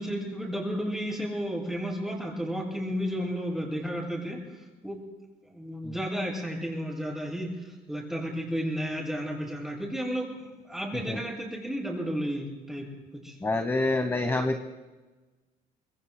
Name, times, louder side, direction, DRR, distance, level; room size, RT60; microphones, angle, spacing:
voice 1, 0.0-4.4 4.8-5.0 5.5-7.6 7.9-12.9 13.2-13.3, equal, ahead, -2 dB, 7.0 m, -32 dB
voice 2, 13.4-14.7, left 2 dB, 15° left, 7 dB, 1.2 m, -27 dB
26.0 x 21.5 x 2.2 m, 1.2 s
cardioid pair, 110°, 17 cm